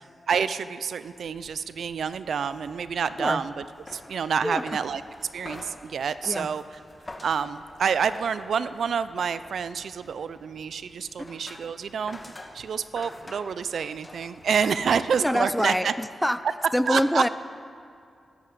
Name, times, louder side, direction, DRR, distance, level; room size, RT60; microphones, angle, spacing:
voice 1, 0.3-3.5 3.9-5.0 5.3-6.6 7.2-12.2 12.5-15.9 16.9-17.2, right 6 dB, 75° right, 14 dB, 0.5 m, -28 dB
sound 1, 1.1-16.0, left 2 dB, 25° left, 1.4 m, -47 dB
voice 2, 4.4-4.8 6.2-6.5 11.2-11.3 15.2-16.5 16.7-17.3, equal, 5° left, 13 dB, 0.4 m, -25 dB
13.0 x 11.0 x 7.9 m, 2.5 s
wide cardioid pair, 110°, 0 cm